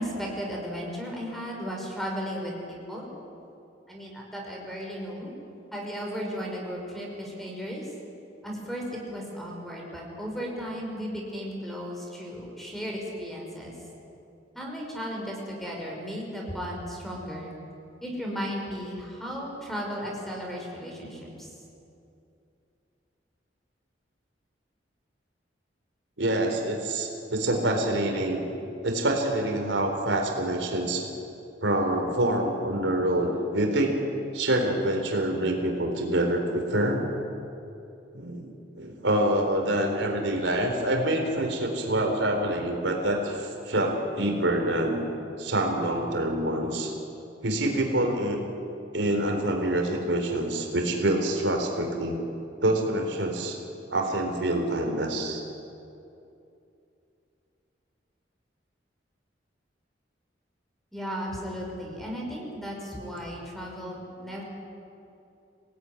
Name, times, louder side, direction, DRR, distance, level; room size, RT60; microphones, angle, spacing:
voice 1, 0.0-3.1 3.9-5.3 5.7-7.9 8.4-13.7 14.5-17.5 18.0-21.5 60.9-64.4, equal, ahead, -1 dB, 5.6 m, -35 dB
voice 2, 26.2-28.5 28.8-31.0 31.6-34.0 34.3-37.0 38.1-45.1 45.4-46.9 47.4-48.4 48.9-52.2 52.6-53.5 53.9-55.4, right 1 dB, 85° right, 2 dB, 4.0 m, -26 dB
26.5 x 18.5 x 9.8 m, 2.7 s
head